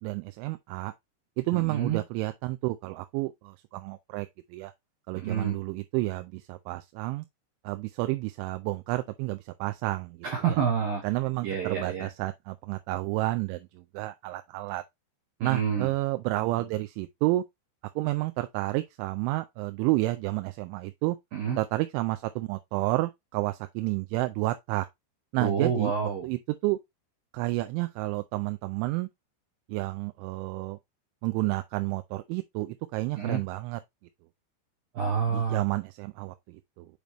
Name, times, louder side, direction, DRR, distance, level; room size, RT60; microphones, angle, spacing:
voice 1, 0.0-0.9 1.4-4.7 5.1-7.3 7.6-10.2 10.5-10.6 11.0-13.7 13.9-14.8 15.4-17.4 18.0-21.2 21.6-24.9 25.3-25.9 26.2-26.8 27.3-29.1 29.7-30.8 31.2-33.8 35.3-36.9, right 19 dB, 85° right, 2.9 m, -30 dB
voice 2, 1.5-2.0 5.1-5.6 10.2-11.0 11.4-12.1 15.4-15.9 21.3-21.6 25.4-26.3 33.2-33.4 35.0-35.6, right 7 dB, 70° right, 2.4 m, -28 dB
6.6 x 5.2 x 2.9 m
omnidirectional pair, 5.4 m